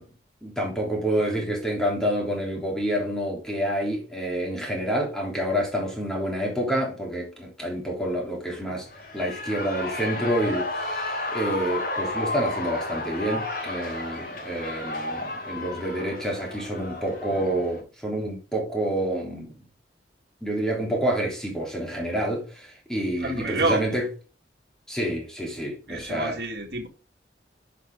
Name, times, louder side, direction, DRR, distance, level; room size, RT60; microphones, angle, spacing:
voice 1, 0.4-8.9 9.1-19.6 20.4-24.1 24.9-26.4, right 1 dB, 5° left, 3.4 m, -28 dB
Shout / Cheering, 8.9-17.8, left 2 dB, 55° left, 3.4 m, -32 dB
voice 2, 23.2-24.0 25.9-26.9, right 2 dB, 60° right, 2.1 m, -28 dB
11.0 x 6.2 x 3.7 m
head